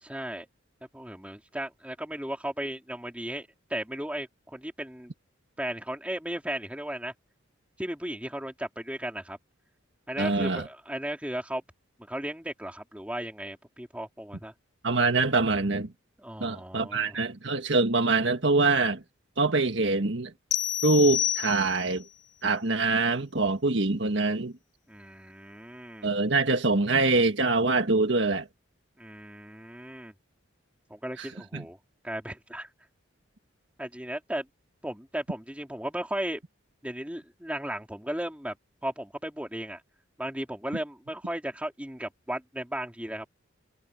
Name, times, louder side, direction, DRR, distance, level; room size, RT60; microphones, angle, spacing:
voice 1, 0.0-0.5 0.9-5.1 5.6-7.1 7.8-9.4 10.1-11.6 12.1-14.5 16.2-17.2 24.9-26.1 29.0-30.1 30.9-31.8 32.0-32.7 33.8-34.5 34.8-36.4 36.8-38.6 38.8-39.8 40.2-43.3, right 1 dB, 5° right, 3.2 m, -35 dB
voice 2, 10.2-10.6 14.8-15.9 16.4-19.0 19.4-20.3 20.8-22.0 22.4-24.5 26.0-28.5 31.2-31.3 31.5-31.6, right 3 dB, 60° right, 1.7 m, -24 dB
sound 1, 20.5-22.0, left 11 dB, 55° left, 2.5 m, -29 dB
head